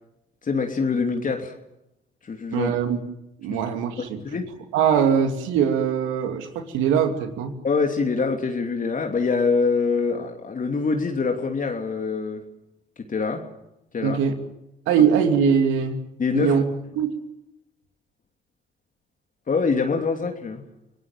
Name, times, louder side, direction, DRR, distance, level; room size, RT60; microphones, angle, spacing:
voice 1, 0.4-1.5 2.2-2.7 3.5-3.6 4.0-4.5 7.6-12.4 13.1-13.5 13.9-14.2 16.2-16.6 19.5-20.6, left 4 dB, 40° left, 3 dB, 3.0 m, -24 dB
voice 2, 2.5-3.0 3.4-4.2 4.7-7.5 14.0-14.3 14.9-16.0 16.3-16.6 17.0-17.1, right 7 dB, 75° right, 6 dB, 2.9 m, -21 dB
29.5 x 18.5 x 7.4 m, 0.86 s
hypercardioid pair, 55°, 20 cm